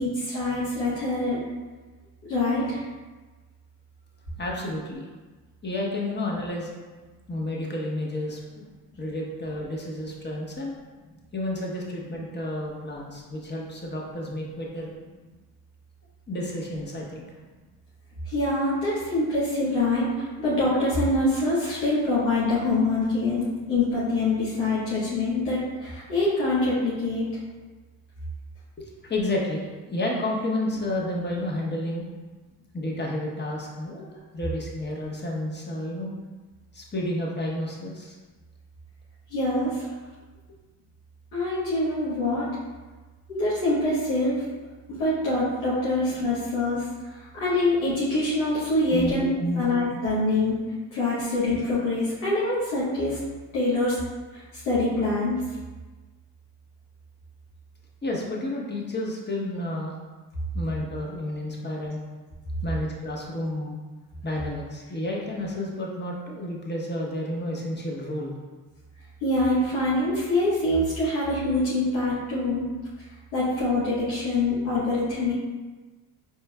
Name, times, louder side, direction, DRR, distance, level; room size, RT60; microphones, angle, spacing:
voice 1, 0.0-1.4 2.3-2.8 18.2-23.4 23.7-27.2 39.3-39.8 41.3-42.5 43.3-44.4 44.9-46.8 47.1-49.3 49.5-50.5 50.9-53.2 53.5-54.0 54.3-55.4 69.2-72.6 73.3-75.3, left 2 dB, 85° left, -10 dB, 1.1 m, -25 dB
voice 2, 4.4-5.1 5.6-6.7 7.3-8.6 9.0-10.7 11.3-14.9 16.3-17.3 29.0-32.1 32.7-36.1 36.7-38.2 48.9-49.7 58.0-60.0 60.5-62.0 62.6-63.7 64.2-68.4, left 1 dB, 20° left, -2 dB, 1.0 m, -31 dB
4.4 x 3.2 x 2.2 m, 1.3 s
hypercardioid pair, 55°, 49 cm